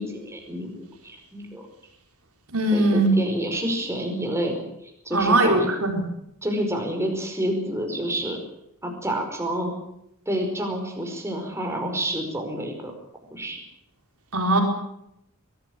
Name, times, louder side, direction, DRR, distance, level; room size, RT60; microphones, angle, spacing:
voice 1, 0.0-1.6 2.7-4.6 5.0-5.7 6.4-8.4 8.8-9.7 10.2-12.9 13.3-13.6, equal, 15° right, 2 dB, 5.1 m, -28 dB
voice 2, 2.5-3.1 5.1-6.0 14.3-14.6, right 2 dB, 80° right, 2 dB, 4.7 m, -20 dB
22.5 x 14.5 x 10.0 m, 0.77 s
head